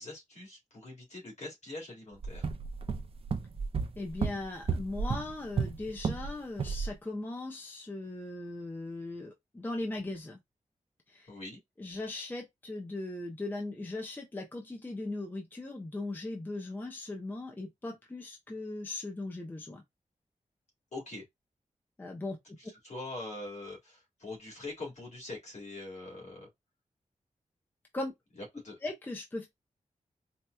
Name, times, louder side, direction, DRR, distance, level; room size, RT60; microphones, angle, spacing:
voice 1, 0.0-2.5 11.3-11.6 20.9-21.2 22.8-26.5 28.4-28.8, left 2 dB, 60° left, 1.9 m, -43 dB
sound 1, 2.2-6.3 6.6-6.9, right 5 dB, 45° right, 0.4 m, -33 dB
voice 2, 4.0-10.4 11.1-11.4 11.8-19.8 22.0-22.4 27.9-28.1 28.8-29.5, left 2 dB, 15° left, 0.5 m, -38 dB
4.2 x 2.2 x 2.3 m
wide cardioid pair, 170°, 13 cm